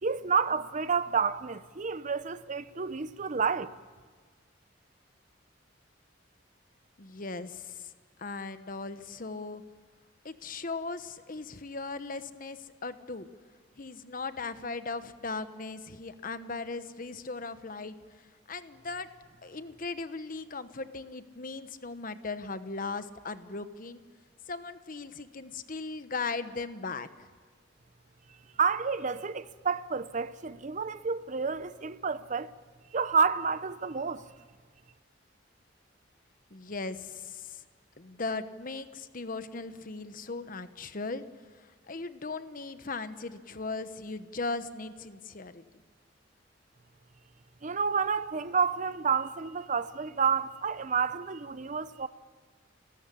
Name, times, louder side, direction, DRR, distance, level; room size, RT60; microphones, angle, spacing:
voice 1, 0.0-3.7 28.6-32.5 32.9-34.2 47.6-52.1, right 5 dB, 40° right, 0.7 m, -29 dB
voice 2, 7.0-7.9 8.2-9.6 10.2-13.3 13.8-17.9 18.5-19.1 19.4-24.0 24.5-27.3 36.5-37.6 38.0-41.2 41.5-45.6, left 3 dB, 45° left, 1.1 m, -38 dB
30.0 x 13.5 x 10.0 m
head